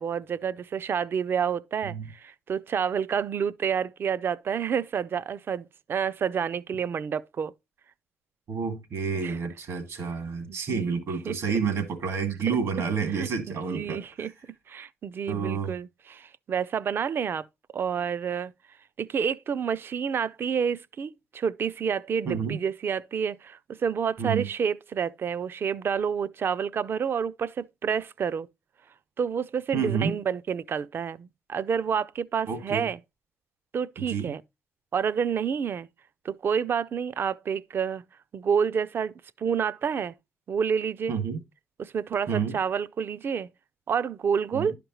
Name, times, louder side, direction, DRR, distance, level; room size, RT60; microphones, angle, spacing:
voice 1, 0.0-7.5 9.2-9.4 10.5-11.4 12.5-12.6 13.1-14.3 14.7-17.5 17.7-18.5 19.0-28.5 29.2-33.0 33.7-34.4 34.9-35.9 36.2-38.0 38.3-40.1 40.5-41.2 41.8-43.5 43.9-44.8, right 7 dB, 50° right, 0.4 m, -29 dB
voice 2, 8.5-14.3 15.3-15.7 22.3-22.6 24.2-24.4 29.7-30.2 32.5-32.9 34.1-34.3 41.1-41.4 42.3-42.6 44.5-44.7, right 6 dB, 75° right, 2.1 m, -29 dB
11.0 x 5.1 x 3.0 m
cardioid pair, 90°, 5 cm